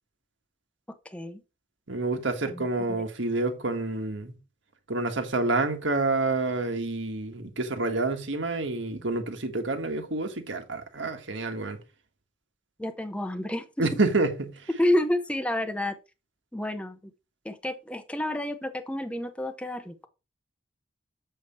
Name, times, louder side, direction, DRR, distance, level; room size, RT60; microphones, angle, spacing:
voice 1, 1.0-1.4 2.4-3.0 12.8-13.9 14.8-15.9 16.5-17.0 17.4-20.1, left 1 dB, 5° left, 0.7 m, -30 dB
voice 2, 1.9-4.3 4.9-11.8 13.8-14.5, right 2 dB, 80° right, 1.6 m, -28 dB
7.8 x 5.7 x 4.3 m
head